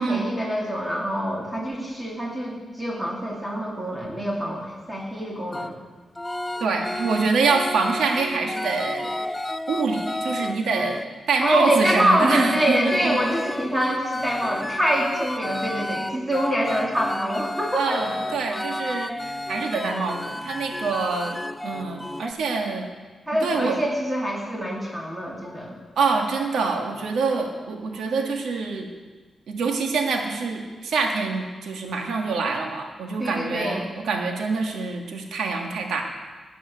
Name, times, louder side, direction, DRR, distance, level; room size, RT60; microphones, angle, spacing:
voice 1, 0.0-5.8 11.4-18.0 18.3-18.4 23.3-25.8 33.2-33.9, equal, 15° right, -2 dB, 2.6 m, -25 dB
sound 1, 5.5-5.7 6.2-11.1 11.5-22.3, left 1 dB, 15° left, 0.6 m, -32 dB
voice 2, 6.6-9.1 9.7-11.0 11.3-13.2 17.7-22.9 23.4-23.8 26.0-28.9 29.5-36.0, right 4 dB, 85° right, 3 dB, 1.6 m, -25 dB
12.0 x 9.2 x 6.3 m, 1.4 s
cardioid pair, 65°, 0 cm